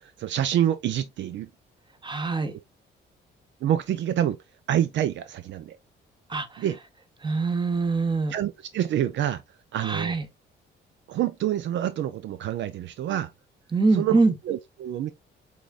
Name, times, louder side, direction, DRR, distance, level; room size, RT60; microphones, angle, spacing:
voice 1, 0.0-1.5 2.5-2.6 3.6-4.4 4.7-5.8 6.6-6.8 8.3-9.4 9.7-10.2 11.1-13.3 13.9-14.2 14.5-15.1, right 11 dB, 70° right, 0.5 m, -27 dB
voice 2, 2.0-2.5 6.3-6.6 7.2-8.3 9.8-10.2 13.7-14.3, right 3 dB, 25° right, 1.1 m, -24 dB
6.1 x 3.6 x 2.4 m
cardioid pair, 90°, 20 cm